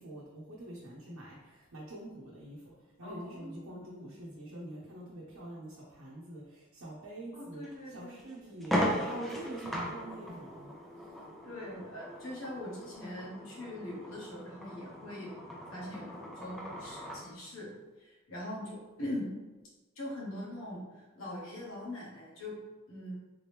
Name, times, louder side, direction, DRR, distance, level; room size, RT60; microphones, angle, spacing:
voice 1, 0.0-2.7 3.0-10.8, right 1 dB, 85° right, -5 dB, 0.8 m, -45 dB
voice 2, 3.0-3.8 7.3-8.6 11.4-15.3 15.7-17.7 18.0-19.3 20.0-22.6 22.9-23.2, left 1 dB, 75° left, -4 dB, 1.3 m, -42 dB
sound 1, 7.6-7.8 8.2-8.3 8.6-17.3, equal, ahead, 0.5 m, -38 dB
3.7 x 3.0 x 3.3 m, 1.2 s
head